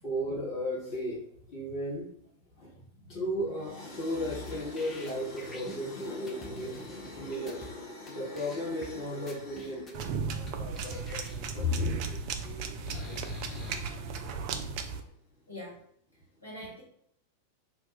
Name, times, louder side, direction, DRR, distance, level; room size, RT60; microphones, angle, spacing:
voice 1, 0.0-1.2 1.5-2.1 2.6-2.8 3.1-13.8 15.0-15.2, left 1 dB, 40° left, -4 dB, 1.2 m, -36 dB
voice 2, 2.7-3.1 15.5-15.8 16.4-16.8, equal, 85° left, -6 dB, 1.2 m, -44 dB
sound 1, 4.2-7.7 8.1-8.2 8.4-8.9 9.3-10.1 10.5-10.6 10.8-13.8, left 3 dB, 20° left, 0.7 m, -47 dB
sound 2, 9.9-15.0, right 5 dB, 45° right, 0.4 m, -35 dB
2.6 x 2.3 x 3.9 m, 0.67 s
figure-of-eight pair, 90°, 0 cm